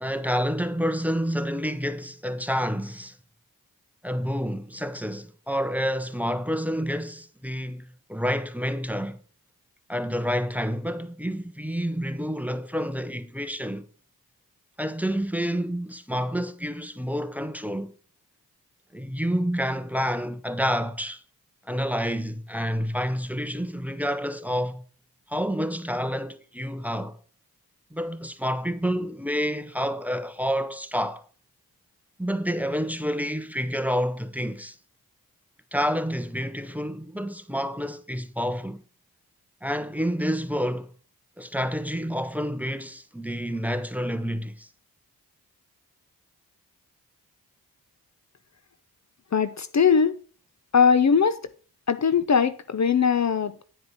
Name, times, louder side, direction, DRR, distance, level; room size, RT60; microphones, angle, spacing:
voice 1, 0.0-3.2 4.0-9.2 9.9-13.9 14.8-17.9 18.9-21.2 21.7-24.8 25.3-27.2 27.9-31.2 32.2-34.8 35.7-38.8 39.6-40.9 41.4-44.7, equal, 5° right, 0.9 m, -28 dB
voice 2, 49.3-50.1 50.7-51.4 51.9-53.6, left 6 dB, 45° left, 0.7 m, -20 dB
9.7 x 5.1 x 5.6 m
cardioid pair, 60°, 38 cm